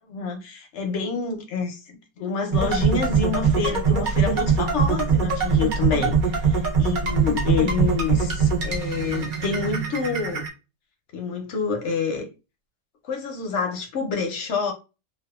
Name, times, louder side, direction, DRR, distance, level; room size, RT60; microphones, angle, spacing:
voice 1, 0.0-10.4 11.1-12.3 13.0-14.7, left 5 dB, 60° left, 0.8 m, -28 dB
sound 1, 2.5-10.5, right 5 dB, 65° right, 0.5 m, -22 dB
2.6 x 2.3 x 2.3 m
omnidirectional pair, 1.7 m